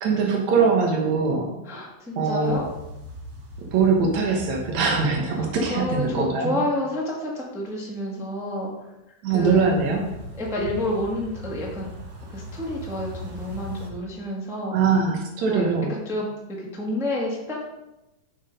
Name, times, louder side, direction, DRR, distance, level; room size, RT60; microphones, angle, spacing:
voice 1, 0.0-1.5 2.2-2.6 3.7-6.6 9.2-10.0 14.7-15.9, right 5 dB, 75° right, 1 dB, 2.5 m, -22 dB
voice 2, 1.6-2.7 5.3-8.7 9.3-9.7 10.3-11.9 12.3-14.8 15.5-15.6 15.9-17.6, left 1 dB, ahead, -3 dB, 0.9 m, -29 dB
sound 1, 2.4-6.2 9.4-13.9, equal, 45° right, 1.3 m, -39 dB
7.6 x 6.4 x 5.2 m, 0.95 s
omnidirectional pair, 3.3 m